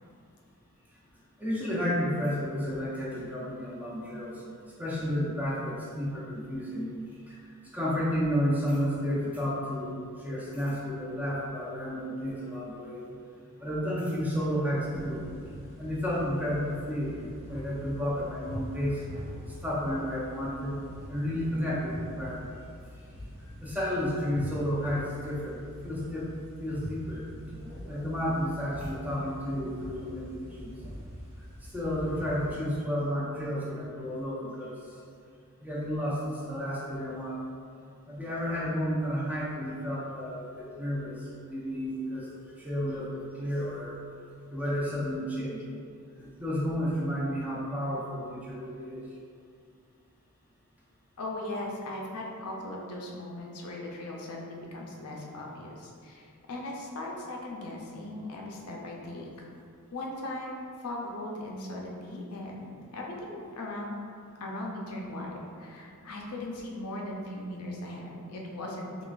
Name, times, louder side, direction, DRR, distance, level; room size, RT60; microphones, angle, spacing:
voice 1, 1.4-4.4 4.8-6.9 7.3-7.4 7.7-13.0 13.6-15.2 15.8-17.2 17.4-19.0 19.5-20.8 21.1-22.6 23.6-26.3 26.6-27.2 27.9-30.7 31.7-34.7 35.6-37.4 38.1-41.2 41.5-42.3 42.6-43.9 44.5-45.6 46.4-49.0, equal, 5° right, -6 dB, 0.6 m, -31 dB
sound 1, 14.8-32.6, equal, 30° left, 0.7 m, -44 dB
voice 2, 51.2-59.5 59.9-64.1 64.4-69.0, left 1 dB, 85° left, -1 dB, 0.6 m, -38 dB
3.7 x 3.0 x 2.4 m, 2.3 s
head